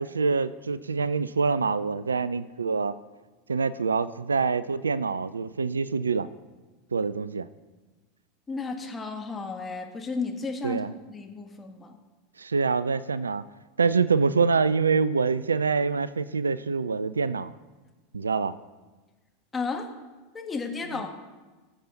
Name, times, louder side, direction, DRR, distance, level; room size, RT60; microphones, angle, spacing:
voice 1, 0.0-2.9 3.5-6.3 6.9-7.5 10.6-10.9 12.4-13.4 13.8-17.5 18.1-18.6, right 5 dB, 85° right, 16 dB, 0.4 m, -25 dB
voice 2, 8.5-11.9 19.5-19.9 20.3-21.1, left 4 dB, 20° left, 3 dB, 1.7 m, -33 dB
19.5 x 7.3 x 3.8 m, 1.2 s
figure-of-eight pair, 85°, 0 cm